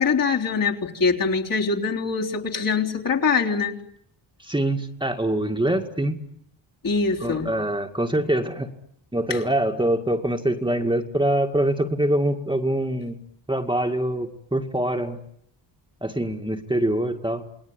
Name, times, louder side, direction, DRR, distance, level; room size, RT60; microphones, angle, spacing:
voice 1, 0.0-3.8 6.8-7.5 9.3-9.4, left 5 dB, 45° left, 0 dB, 3.7 m, -23 dB
voice 2, 4.4-6.2 7.2-8.7 9.1-13.2 13.5-15.2 16.0-17.4, right 1 dB, 10° right, 4 dB, 2.0 m, -24 dB
29.0 x 20.5 x 9.6 m, 0.73 s
cardioid pair, 105°, 46 cm